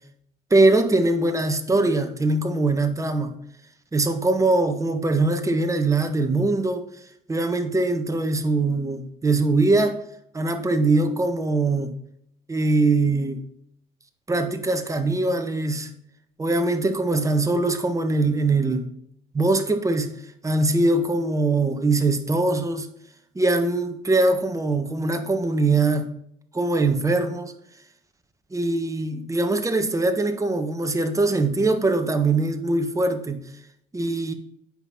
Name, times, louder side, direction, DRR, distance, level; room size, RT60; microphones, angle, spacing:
voice 1, 0.5-3.3 3.9-6.8 7.3-10.0 10.3-11.9 12.5-13.4 14.3-15.9 16.4-18.9 19.3-20.1 20.4-22.9 23.3-26.1 26.5-27.5 28.5-33.4 33.9-34.3, right 2 dB, 15° right, 1.5 m, -22 dB
9.1 x 5.7 x 5.7 m
cardioid pair, 95°, 18 cm